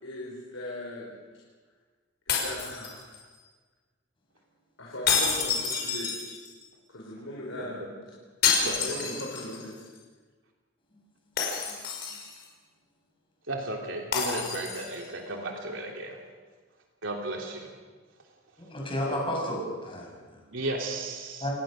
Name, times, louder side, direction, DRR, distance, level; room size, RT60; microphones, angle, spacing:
voice 1, 0.0-1.2 2.3-3.2 4.8-6.1 6.9-7.8 8.6-9.8, left 1 dB, 80° left, -4 dB, 5.0 m, -39 dB
sound 1, 2.3-3.4 5.1-6.6 8.4-9.6 10.0-10.1 11.4-12.4 14.1-15.1, left 6 dB, 55° left, 5.6 m, -28 dB
voice 2, 8.6-9.0 13.5-16.2 17.0-17.7 19.1-19.2 20.5-21.5, right 2 dB, 70° right, 1 dB, 3.3 m, -34 dB
voice 3, 18.7-20.4 21.4-21.5, equal, 25° left, -1 dB, 6.8 m, -32 dB
28.5 x 19.5 x 6.6 m, 1.4 s
head